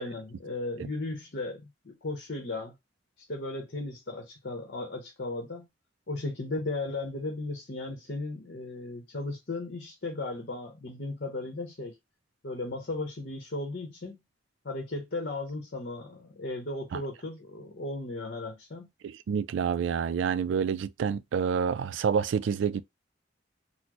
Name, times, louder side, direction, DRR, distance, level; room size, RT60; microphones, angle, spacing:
voice 1, 0.0-2.7 3.3-5.7 6.1-11.9 12.4-14.2 14.6-18.9, left 2 dB, 55° left, 0.9 m, -36 dB
voice 2, 19.0-22.8, right 7 dB, 75° right, 0.3 m, -28 dB
4.1 x 2.1 x 3.0 m
head